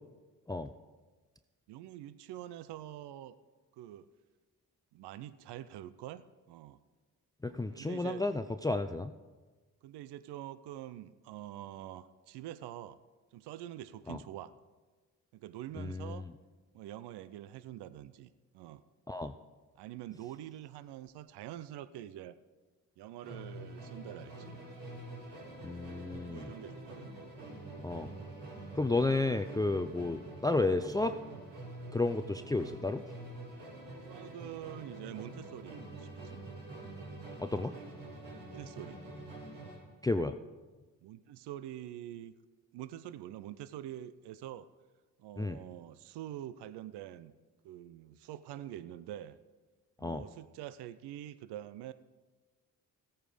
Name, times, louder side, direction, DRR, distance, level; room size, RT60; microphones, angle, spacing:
voice 1, 1.7-3.4 3.7-4.1 4.9-6.8 7.8-8.2 9.8-13.0 13.3-14.5 15.3-16.3 16.7-18.8 19.8-22.4 23.0-24.6 26.3-27.1 29.9-30.0 34.0-36.4 38.3-39.0 41.0-42.3 42.7-44.7 45.2-47.3 47.6-49.4 50.0-51.9, right 12 dB, 80° right, 15 dB, 0.6 m, -45 dB
voice 2, 7.4-9.1 14.1-14.2 15.8-16.2 19.1-19.3 25.6-26.5 27.8-28.1 28.7-31.2 31.9-33.0 37.4-37.7 40.0-40.4 45.4-45.6 50.0-50.2, left 2 dB, 10° left, 9 dB, 0.5 m, -32 dB
Musical instrument, 23.2-39.9, right 2 dB, 60° right, 5.1 m, -46 dB
15.5 x 8.9 x 5.0 m, 1.3 s
supercardioid pair, 55°, 40 cm